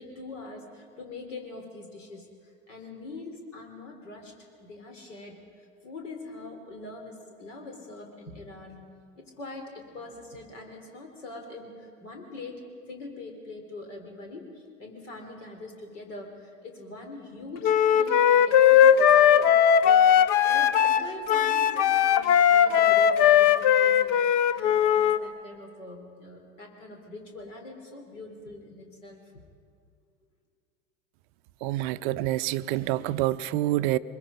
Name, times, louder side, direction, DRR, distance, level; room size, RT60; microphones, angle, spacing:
voice 1, 0.0-4.3 4.6-8.8 9.2-12.6 12.9-20.1 20.4-29.4, left 2 dB, 65° left, 2 dB, 4.0 m, -43 dB
Wind instrument woodwind instrument, 17.6-25.2, left 9 dB, 35° left, 0.7 m, -19 dB
voice 2, 31.6-34.0, right 15 dB, 40° right, 15 dB, 0.6 m, -27 dB
24.5 x 22.0 x 5.2 m, 2.2 s
figure-of-eight pair, 85°, 39 cm